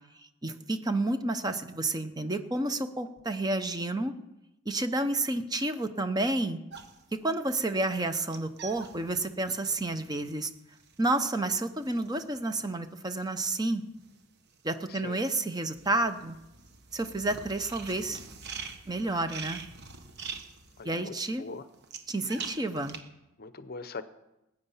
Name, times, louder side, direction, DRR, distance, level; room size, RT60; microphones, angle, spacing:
voice 1, 0.4-4.1 4.7-6.6 7.1-10.5 11.0-13.8 14.6-16.4 16.9-18.2 18.9-19.6 20.8-21.4 22.1-23.0, right 2 dB, 20° right, 9 dB, 0.7 m, -30 dB
sound 1, 6.7-14.2 14.5-23.0, right 5 dB, 50° right, 1.3 m, -45 dB
voice 2, 14.9-15.2 20.8-21.7 23.4-24.0, left 3 dB, 45° left, 13 dB, 0.7 m, -41 dB
20.0 x 9.3 x 5.6 m, 0.94 s
head